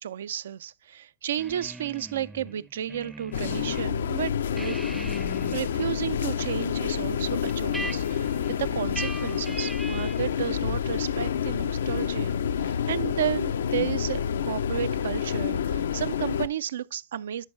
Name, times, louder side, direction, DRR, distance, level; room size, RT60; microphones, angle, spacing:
voice 1, 0.0-4.9 5.5-17.5, right 10 dB, 80° right, 0.4 m, -33 dB
sound 1, 1.4-3.9 4.2-10.3, right 2 dB, 5° right, 0.5 m, -41 dB
sound 2, 3.3-16.5, left 8 dB, 85° left, 0.5 m, -28 dB
10.5 x 4.4 x 3.2 m
hypercardioid pair, 115°, 0 cm